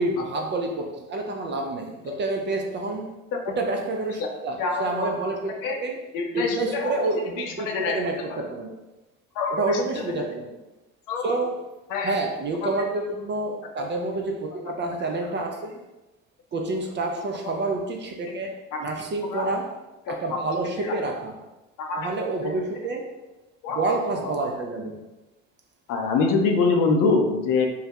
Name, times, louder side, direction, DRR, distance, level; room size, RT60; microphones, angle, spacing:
voice 1, 0.0-3.1 3.5-6.0 6.3-8.7 9.5-10.6 11.2-11.5 12.0-15.8 16.5-19.7 20.1-21.3 21.9-23.1 23.7-25.0, right 2 dB, 30° right, 2 dB, 0.4 m, -28 dB
voice 2, 4.6-5.1 5.6-5.8 6.1-7.0 7.4-8.0 8.3-8.4 9.3-9.8 10.2-10.3 11.1-11.3 11.9-12.1 12.6-12.7 13.8-13.9 14.7-14.8 18.7-18.8 19.3-19.4 20.1-20.4 20.8-21.0 21.8-22.1 22.4-22.5 23.6-23.8 24.2-24.3 25.9-27.7, left 4 dB, 60° left, 2 dB, 0.6 m, -25 dB
2.2 x 2.0 x 2.8 m, 1.0 s
hypercardioid pair, 70°, 36 cm